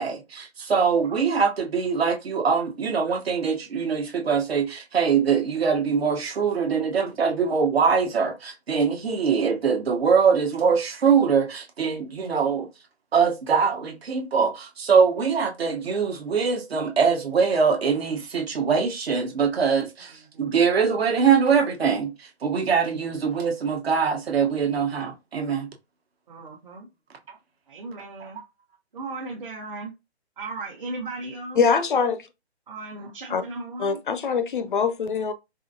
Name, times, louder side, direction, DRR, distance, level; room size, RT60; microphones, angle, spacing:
voice 1, 0.0-12.7 13.1-25.7 28.2-28.3, right 6 dB, 65° right, 1.2 m, -23 dB
voice 2, 26.3-26.9 27.7-28.4 28.9-29.9 30.4-31.6 32.7-34.0, right 3 dB, 40° right, 1.1 m, -36 dB
voice 3, 31.6-32.3 33.3-33.4 33.8-35.3, left 5 dB, 50° left, 0.6 m, -23 dB
4.8 x 2.7 x 2.7 m
figure-of-eight pair, 150°, 33 cm